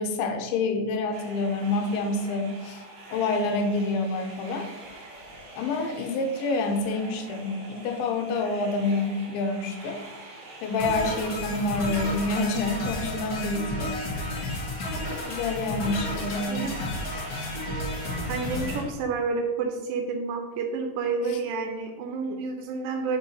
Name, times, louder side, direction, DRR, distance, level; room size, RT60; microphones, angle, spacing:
voice 1, 0.0-2.8 3.1-4.7 5.6-10.0 10.6-13.9 15.3-16.7 21.2-21.4, left 3 dB, 85° left, 5 dB, 2.4 m, -27 dB
sound 1, 1.1-18.9, right 2 dB, 50° right, 1.5 m, -45 dB
sound 2, 10.8-18.8, left 1 dB, 65° left, 1.2 m, -32 dB
voice 2, 18.3-23.2, right 4 dB, 80° right, 4 dB, 2.1 m, -29 dB
5.5 x 4.1 x 5.3 m, 1.2 s
omnidirectional pair, 4.2 m